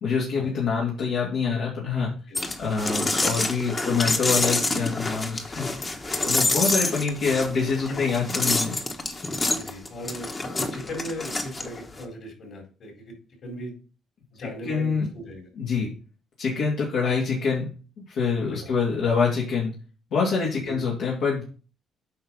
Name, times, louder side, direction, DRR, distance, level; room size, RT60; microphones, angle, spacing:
voice 1, 0.0-2.1 2.6-5.7 6.2-8.8 14.4-15.1 15.6-15.9 16.4-17.7 18.0-19.7 20.1-21.4, left 5 dB, 75° left, -4 dB, 2.5 m, -25 dB
sound 1, 2.3-12.0, left 2 dB, 30° left, 1.3 m, -27 dB
voice 2, 9.5-13.1 13.4-13.7 14.3-15.5 15.8-15.9 18.5-18.7 20.6-20.8, equal, 55° left, 1 dB, 4.3 m, -38 dB
8.6 x 5.2 x 4.1 m, 0.36 s
cardioid pair, 95°, 0 cm